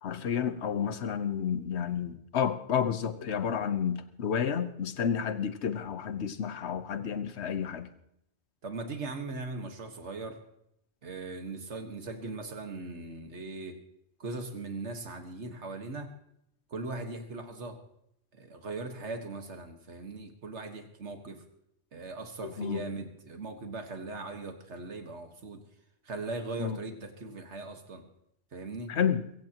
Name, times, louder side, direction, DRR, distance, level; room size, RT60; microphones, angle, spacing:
voice 1, 0.0-7.9 22.4-22.8 26.6-26.8 28.9-29.2, left 8 dB, 70° left, 1.2 m, -31 dB
voice 2, 8.6-10.4 11.0-13.8 14.2-16.1 16.7-17.8 18.3-21.4 21.9-25.6 26.0-28.0 28.5-28.9, right 3 dB, 80° right, 1.9 m, -39 dB
23.0 x 16.0 x 3.0 m
omnidirectional pair, 1.2 m